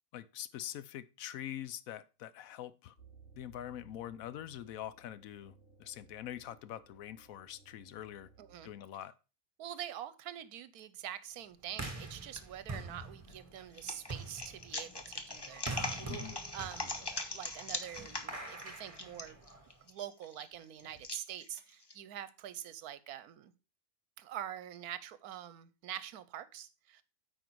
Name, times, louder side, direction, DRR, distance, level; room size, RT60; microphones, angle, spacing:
voice 1, 0.1-2.9 3.3-8.3 8.6-9.1 16.1-16.4, left 11 dB, 70° left, 1.0 m, -44 dB
sound 1, 3.0-8.7, right 4 dB, 55° left, 2.7 m, -61 dB
voice 2, 8.4-8.7 9.6-19.4 19.8-23.5 24.2-27.0, right 11 dB, 80° right, 1.2 m, -45 dB
sound 2, 11.7-19.8, right 3 dB, 25° right, 1.4 m, -45 dB
sound 3, 11.9-12.4 13.0-21.9, left 2 dB, 20° left, 0.7 m, -42 dB
9.1 x 4.9 x 4.6 m
omnidirectional pair, 1.6 m